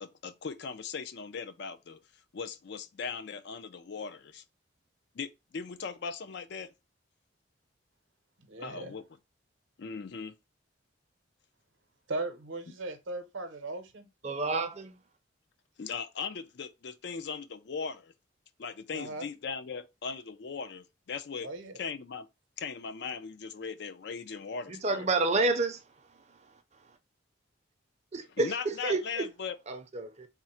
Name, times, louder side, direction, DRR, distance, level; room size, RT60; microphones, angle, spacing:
voice 1, 0.0-2.0 2.3-4.4 5.1-6.7 8.6-9.0 9.8-10.3 15.8-18.1 18.6-21.5 21.8-22.3 22.6-25.1 28.4-29.6, left 5 dB, 55° left, 0.4 m, -39 dB
voice 2, 8.4-9.0 12.1-14.1 18.9-19.3 21.4-21.8, right 2 dB, 70° right, 0.7 m, -38 dB
voice 3, 14.2-14.9 24.7-25.8 28.1-29.2 29.7-30.3, right 3 dB, 35° right, 0.5 m, -29 dB
3.6 x 2.1 x 4.2 m
head